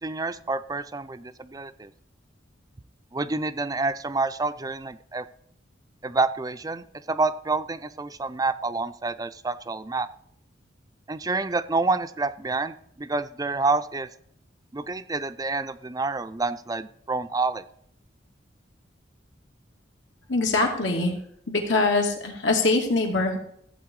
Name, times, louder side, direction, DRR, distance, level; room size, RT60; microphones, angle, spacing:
voice 1, 0.0-1.9 3.1-5.2 6.0-10.1 11.1-14.1 14.7-17.6, right 3 dB, 20° right, 13 dB, 0.5 m, -28 dB
voice 2, 20.3-21.1 21.5-23.4, left 3 dB, 85° left, 1 dB, 2.7 m, -23 dB
15.0 x 8.2 x 4.8 m, 0.69 s
head